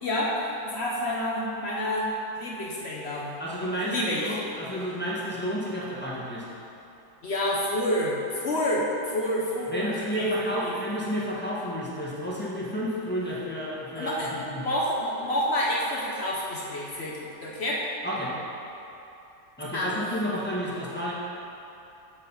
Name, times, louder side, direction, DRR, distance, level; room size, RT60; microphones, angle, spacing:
voice 1, 0.0-2.1 2.4-3.3 3.8-4.3 7.2-10.7 14.0-14.3 14.6-17.8 19.7-20.0, left 1 dB, 50° left, -4 dB, 0.9 m, -28 dB
voice 2, 3.4-6.4 9.7-14.7 18.0-18.3 19.6-21.1, equal, 5° left, -8 dB, 1.0 m, -31 dB
7.3 x 5.1 x 5.5 m, 2.8 s
omnidirectional pair, 1.9 m